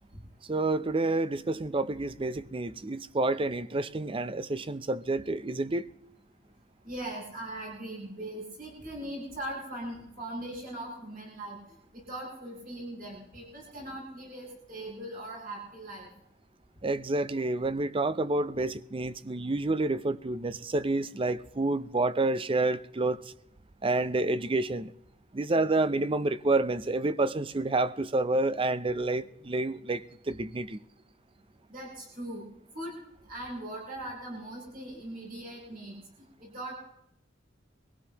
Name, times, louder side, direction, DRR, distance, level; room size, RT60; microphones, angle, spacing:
voice 1, 0.5-5.9 16.8-23.2 23.8-24.9 25.3-30.8, right 2 dB, 30° right, 0.6 m, -29 dB
voice 2, 6.8-11.6 11.9-16.1 31.7-32.4 32.7-32.9 33.3-35.9 36.4-36.8, right 1 dB, 50° right, 7.9 m, -40 dB
24.5 x 16.0 x 3.0 m
head